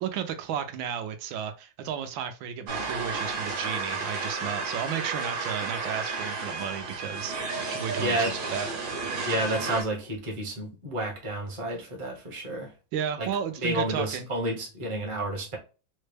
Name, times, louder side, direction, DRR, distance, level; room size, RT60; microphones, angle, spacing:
voice 1, 0.0-8.7 12.9-14.3, right 8 dB, 80° right, 1.3 m, -33 dB
sound 1, 2.7-9.8, right 4 dB, 50° right, 1.4 m, -32 dB
voice 2, 8.0-8.3 9.2-12.7 13.2-13.3 13.6-15.6, right 1 dB, 30° right, 0.6 m, -30 dB
4.0 x 2.1 x 3.2 m
omnidirectional pair, 2.2 m